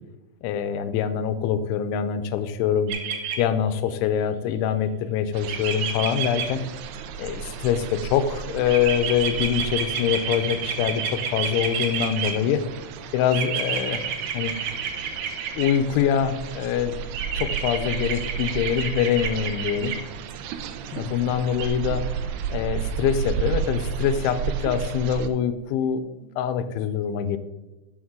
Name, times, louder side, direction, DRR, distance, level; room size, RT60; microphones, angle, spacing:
voice 1, 0.4-3.0 3.4-6.7 7.2-12.7 13.1-14.0 14.3-14.6 15.6-17.0 17.4-20.0 20.9-22.1 22.5-27.4, left 8 dB, 85° left, 11 dB, 3.0 m, -24 dB
sound 1, 2.9-3.4 5.5-6.4 8.7-12.3 13.3-15.7 17.1-20.0 21.6-21.7, right 8 dB, 65° right, 2.3 m, -28 dB
sound 2, 5.3-25.3, right 7 dB, 85° right, 2.5 m, -33 dB
12.5 x 6.7 x 3.7 m, 1.1 s
omnidirectional pair, 5.3 m